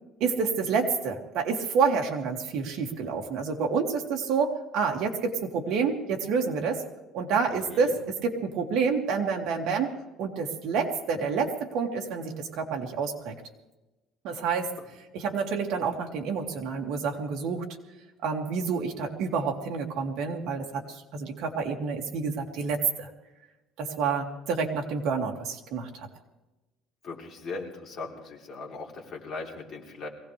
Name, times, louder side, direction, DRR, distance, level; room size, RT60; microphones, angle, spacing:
voice 1, 0.2-6.8 7.1-9.9 10.2-13.3 14.2-14.7 15.1-17.6 18.2-23.1 23.8-26.1, right 5 dB, 60° right, 1 dB, 2.4 m, -28 dB
voice 2, 27.0-30.1, left 3 dB, 35° left, -2 dB, 3.3 m, -39 dB
23.0 x 17.5 x 3.4 m, 1.1 s
cardioid pair, 165°, 0 cm